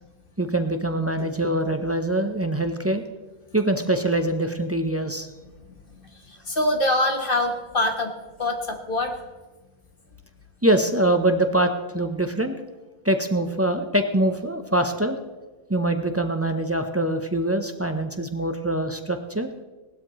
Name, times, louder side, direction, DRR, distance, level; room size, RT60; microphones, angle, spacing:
voice 1, 0.4-3.0 3.5-5.3 10.6-12.5 13.0-15.2 15.7-19.5, right 1 dB, 15° right, 6 dB, 0.5 m, -24 dB
voice 2, 5.6-8.1 8.4-9.2, left 1 dB, 40° left, 3 dB, 1.5 m, -25 dB
18.0 x 12.5 x 3.1 m, 1.2 s
omnidirectional pair, 1.4 m